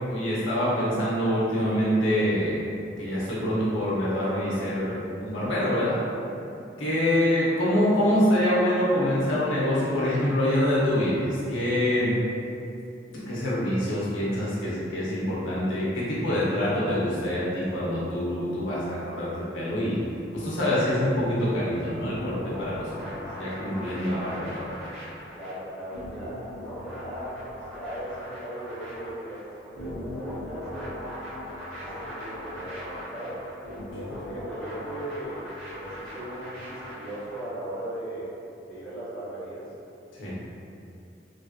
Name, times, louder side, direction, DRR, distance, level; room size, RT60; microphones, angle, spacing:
voice 1, 0.1-2.6 3.0-6.0 6.8-12.1 13.1-20.0 20.3-23.1 23.4-24.7 40.1-40.4, left 1 dB, 85° left, -8 dB, 0.8 m, -25 dB
sound 1, 22.0-37.4, left 1 dB, 55° right, 1.4 m, -39 dB
voice 2, 25.3-31.0 31.8-33.5 33.9-35.4 35.8-38.3 38.7-39.7, right 1 dB, 5° left, -13 dB, 0.8 m, -38 dB
3.2 x 2.7 x 2.4 m, 2.6 s
head